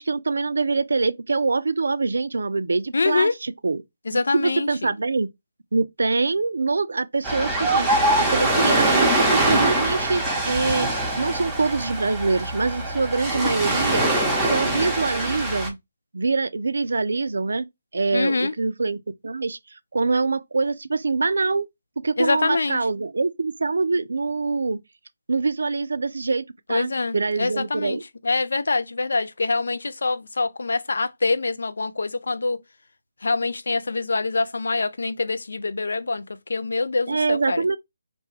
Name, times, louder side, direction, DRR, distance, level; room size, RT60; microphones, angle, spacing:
voice 1, 0.0-3.8 4.1-5.3 5.7-8.1 8.3-10.9 11.2-14.0 14.4-15.8 16.1-17.6 17.9-19.0 19.2-19.6 19.9-21.7 22.0-24.8 25.3-28.0 37.1-37.8, right 3 dB, 70° right, 0.3 m, -24 dB
voice 2, 2.9-3.3 4.1-4.9 18.1-18.5 22.2-22.8 26.7-32.6 33.2-36.2 36.5-37.7, left 3 dB, 65° left, 0.3 m, -25 dB
Ocean, 7.2-15.7, right 1 dB, 5° right, 0.7 m, -23 dB
2.6 x 2.2 x 3.1 m
figure-of-eight pair, 150°, 0 cm